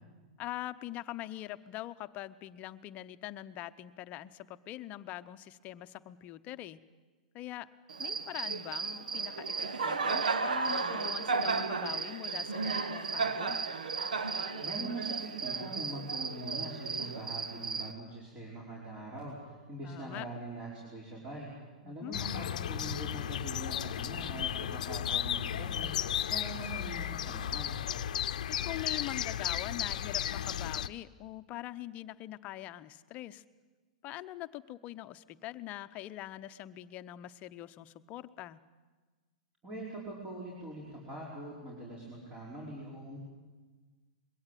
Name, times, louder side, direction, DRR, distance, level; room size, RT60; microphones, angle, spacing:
voice 1, 0.4-6.8 7.3-7.7 8.0-13.6 19.8-20.3 21.8-22.2 28.5-33.4 34.0-38.6, left 14 dB, 35° left, 12 dB, 0.8 m, -43 dB
Cricket, 7.9-17.9, right 4 dB, 85° right, 1.3 m, -34 dB
voice 2, 14.6-21.5 21.8-25.9 26.2-27.8 39.6-43.2, right 1 dB, 25° right, -4 dB, 5.3 m, -43 dB
sound 1, 22.1-30.9, left 10 dB, 70° left, 0.7 m, -34 dB
22.0 x 17.0 x 9.3 m, 1.3 s
hypercardioid pair, 120°, 4 cm